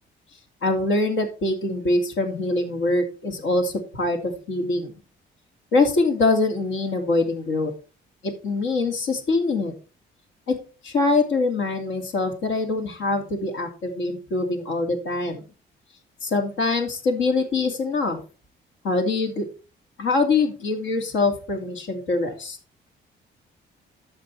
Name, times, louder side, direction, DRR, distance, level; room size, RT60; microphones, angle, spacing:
voice 1, 0.6-4.9 5.7-7.7 8.2-9.7 10.5-10.6 10.8-15.4 16.2-18.2 18.8-19.5 20.0-22.6, left 3 dB, 85° left, 3 dB, 2.8 m, -24 dB
13.0 x 5.4 x 4.5 m, 0.34 s
cardioid pair, 90°, 20 cm